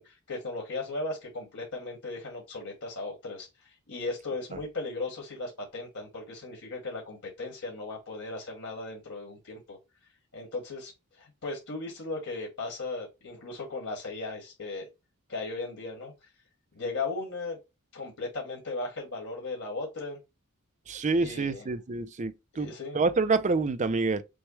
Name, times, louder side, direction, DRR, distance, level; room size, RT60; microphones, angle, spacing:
voice 1, 0.0-9.8 10.3-10.9 11.2-14.9 15.3-16.1 16.7-17.6 17.9-20.2 21.2-21.6 22.5-23.0, left 3 dB, 65° left, 1.8 m, -37 dB
voice 2, 20.9-24.2, right 3 dB, 35° right, 0.5 m, -27 dB
6.2 x 2.2 x 3.1 m
head